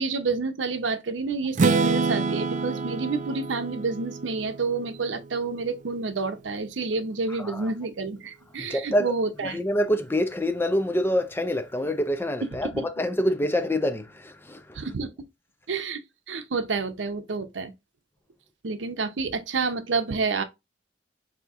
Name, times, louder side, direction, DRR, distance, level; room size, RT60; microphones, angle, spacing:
voice 1, 0.0-9.6 12.7-12.9 14.7-15.3 15.7-16.0 16.3-17.7 18.6-20.4, right 4 dB, 85° right, 0.7 m, -29 dB
Strum, 1.6-5.5, right 4 dB, 45° right, 0.4 m, -27 dB
voice 2, 7.3-7.7 8.6-9.1 9.4-14.9, equal, 10° left, 0.5 m, -26 dB
4.1 x 2.8 x 3.5 m
head